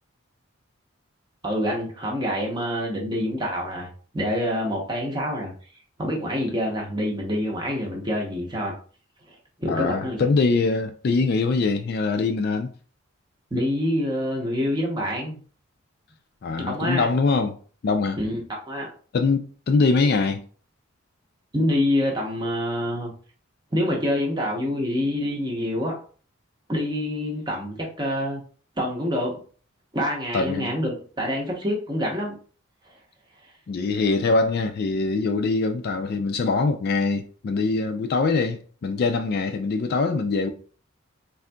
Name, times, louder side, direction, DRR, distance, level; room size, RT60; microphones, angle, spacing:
voice 1, 1.4-5.5 6.0-8.7 9.3-10.2 13.5-15.4 16.6-17.1 18.2-18.3 18.7-18.9 21.5-23.1 23.7-26.0 26.7-28.4 28.8-29.4 29.9-32.3 32.9-33.0, equal, 20° right, 0.7 m, -26 dB
voice 2, 9.7-12.7 16.4-17.6 17.8-18.2 19.1-20.4 30.3-30.7 33.7-40.5, left 3 dB, 50° left, 0.3 m, -23 dB
3.7 x 2.6 x 2.2 m
head